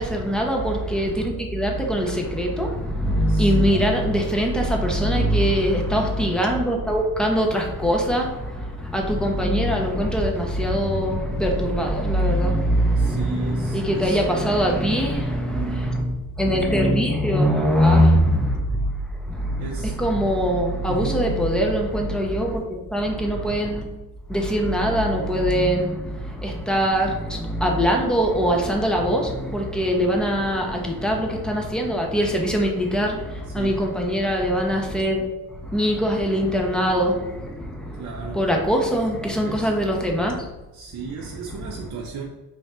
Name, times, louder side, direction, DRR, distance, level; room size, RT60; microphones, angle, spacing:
voice 1, 0.0-23.9 24.3-40.5 41.5-41.8, equal, ahead, 1 dB, 0.6 m, -22 dB
voice 2, 3.3-3.9 12.9-14.2 15.5-16.2 19.6-19.9 20.9-21.2 33.5-33.8 37.9-38.4 39.4-39.7 40.7-42.2, right 5 dB, 50° right, -1 dB, 0.5 m, -36 dB
3.2 x 2.4 x 4.2 m, 1.0 s
cardioid pair, 105°, 37 cm